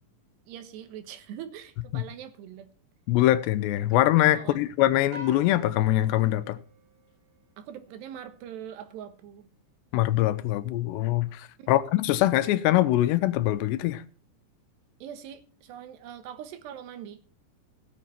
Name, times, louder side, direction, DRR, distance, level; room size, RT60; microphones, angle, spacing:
voice 1, 0.5-2.7 4.3-4.6 7.6-9.5 11.6-11.7 15.0-17.2, right 9 dB, 85° right, 3.4 m, -42 dB
voice 2, 3.1-6.6 9.9-14.0, left 15 dB, 90° left, 3.0 m, -23 dB
sound 1, 5.1-7.7, right 1 dB, 50° right, 2.1 m, -46 dB
16.0 x 7.4 x 5.8 m
omnidirectional pair, 4.8 m